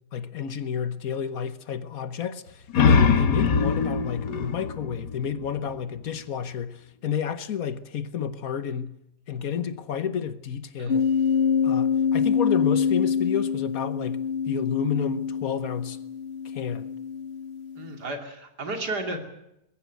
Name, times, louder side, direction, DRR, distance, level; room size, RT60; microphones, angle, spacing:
voice 1, 0.1-8.9 9.3-11.1 11.6-16.0 16.4-16.9, left 8 dB, 60° left, 1.4 m, -30 dB
sound 1, 2.5-5.9, left 5 dB, 80° left, 1.9 m, -23 dB
sound 2, 10.9-17.9, left 6 dB, 40° left, 1.3 m, -26 dB
voice 2, 17.8-19.2, right 2 dB, 70° right, 3.4 m, -33 dB
21.5 x 16.0 x 9.4 m
omnidirectional pair, 1.8 m